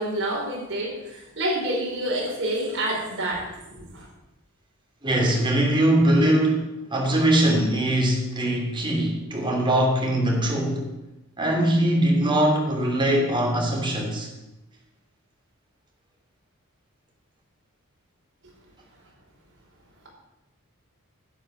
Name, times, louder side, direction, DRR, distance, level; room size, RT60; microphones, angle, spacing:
voice 1, 0.0-4.1, right 1 dB, 55° right, -3 dB, 5.2 m, -28 dB
voice 2, 5.0-10.9 11.4-14.3, right 1 dB, 20° right, -1 dB, 3.2 m, -22 dB
11.5 x 9.2 x 6.6 m, 0.95 s
head